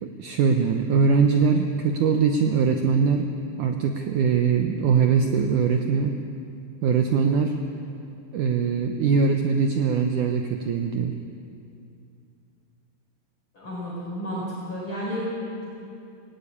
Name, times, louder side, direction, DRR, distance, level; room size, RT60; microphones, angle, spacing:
voice 1, 0.0-3.3 3.6-6.2 6.8-7.5 8.3-11.1, right 5 dB, 80° right, 5 dB, 1.8 m, -22 dB
voice 2, 13.5-15.7, equal, 30° left, -6 dB, 4.9 m, -32 dB
18.5 x 17.0 x 8.6 m, 2.5 s
omnidirectional pair, 4.8 m